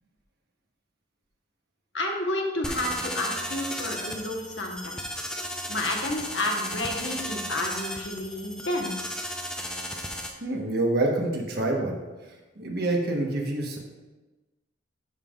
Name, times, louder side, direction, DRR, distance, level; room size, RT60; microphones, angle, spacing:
voice 1, 1.9-5.0 5.7-9.1, left 1 dB, 70° left, 1 dB, 1.2 m, -30 dB
sound 1, 2.6-10.3, equal, 5° left, 0.6 m, -35 dB
voice 2, 10.4-12.0 12.3-13.8, right 2 dB, 55° right, 1 dB, 1.2 m, -27 dB
12.5 x 5.4 x 2.4 m, 1.2 s
head